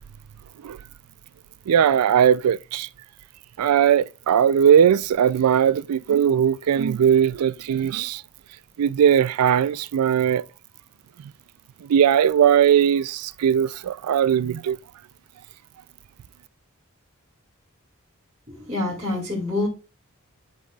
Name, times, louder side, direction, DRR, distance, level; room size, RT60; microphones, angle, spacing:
voice 1, 1.7-2.9 3.6-8.2 8.8-10.4 11.9-14.8, right 8 dB, 85° right, 0.3 m, -19 dB
voice 2, 18.5-19.7, left 2 dB, 30° right, 2.1 m, -26 dB
11.0 x 4.0 x 2.3 m
head